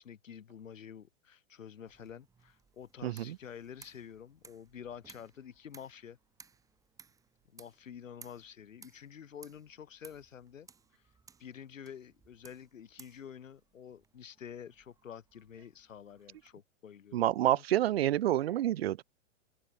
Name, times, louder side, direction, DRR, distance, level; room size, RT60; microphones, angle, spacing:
voice 1, 0.0-6.2 7.5-10.7 10.9-11.0 11.4-17.6, left 8 dB, 90° left, 8.0 m, -49 dB
sound 1, 1.9-16.5, right 5 dB, 10° right, 7.8 m, -61 dB
voice 2, 3.0-3.4 17.1-19.0, right 13 dB, 50° right, 1.6 m, -28 dB
hypercardioid pair, 165°, 38 cm